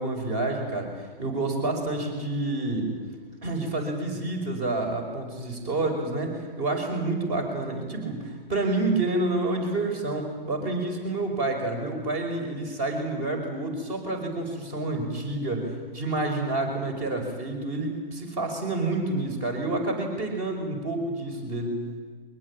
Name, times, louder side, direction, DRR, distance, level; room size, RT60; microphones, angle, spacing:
voice 1, 0.0-2.9 3.4-21.8, right 2 dB, 25° right, 5 dB, 5.4 m, -29 dB
23.0 x 19.5 x 8.9 m, 1.5 s
figure-of-eight pair, 125°, 29 cm